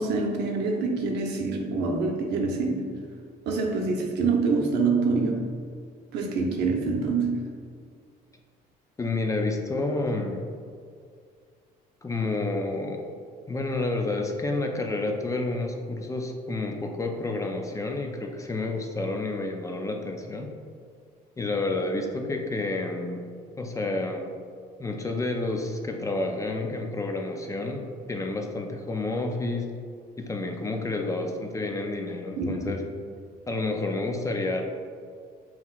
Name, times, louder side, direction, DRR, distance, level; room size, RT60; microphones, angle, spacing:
voice 1, 0.0-3.0 3.5-5.4 6.1-7.5 32.4-32.7, right 4 dB, 85° right, 1 dB, 0.7 m, -26 dB
voice 2, 9.0-10.4 12.0-13.0 13.5-20.5 21.4-23.3 23.6-24.3 24.8-29.7 30.2-32.8 33.5-34.6, left 2 dB, 20° left, 3 dB, 0.4 m, -29 dB
5.4 x 3.0 x 2.4 m, 2.1 s
cardioid pair, 110°, 17 cm